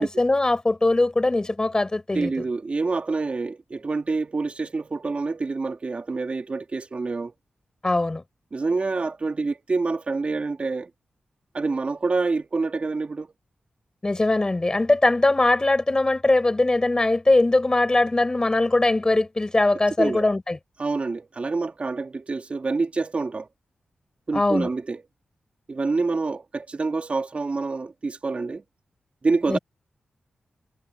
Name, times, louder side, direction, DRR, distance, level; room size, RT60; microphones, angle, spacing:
voice 1, 0.0-2.3 7.8-8.2 14.0-20.6 24.3-24.7 29.5-29.6, left 2 dB, 25° left, 5.9 m, -21 dB
voice 2, 2.1-7.3 8.5-10.9 11.5-13.3 20.0-20.3 20.8-23.5 24.3-25.0 25.7-28.6 29.2-29.6, right 3 dB, 45° right, 2.8 m, -27 dB
wide cardioid pair, 95°, 3 cm